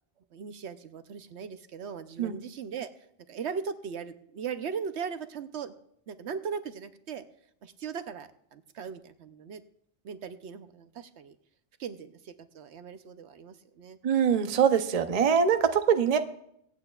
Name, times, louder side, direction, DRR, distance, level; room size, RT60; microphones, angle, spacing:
voice 1, 0.3-2.9 3.3-5.7 6.1-7.2 7.6-9.6 10.0-11.4 11.8-14.0, right 6 dB, 75° right, 10 dB, 1.0 m, -38 dB
voice 2, 14.0-16.2, right 7 dB, 40° right, 8 dB, 0.7 m, -23 dB
24.5 x 8.9 x 2.4 m, 0.72 s
omnidirectional pair, 1.2 m